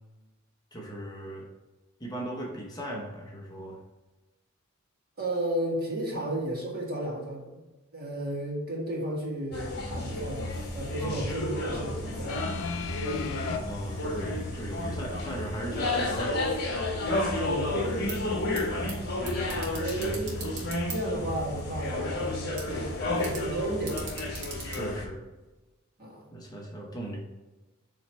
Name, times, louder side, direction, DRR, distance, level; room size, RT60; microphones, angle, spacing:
voice 1, 0.7-1.5 2.0-3.8 11.0-11.3 13.7-16.4 18.8-20.6 21.1-21.3 24.6-25.2 26.3-27.2, right 1 dB, 20° left, -2 dB, 0.8 m, -38 dB
voice 2, 5.2-7.6 7.9-12.4 17.4-18.2 19.7-20.4 20.9-24.0 26.0-26.2, right 1 dB, 45° right, -3 dB, 1.7 m, -33 dB
sound 1, 9.5-25.1, left 2 dB, 45° left, 1.4 m, -32 dB
sound 2, 12.3-13.6 14.6-14.7, left 6 dB, 85° left, 0.5 m, -35 dB
sound 3, 17.9-25.7, right 3 dB, 70° right, 1.6 m, -45 dB
7.4 x 3.1 x 4.3 m, 1.1 s
head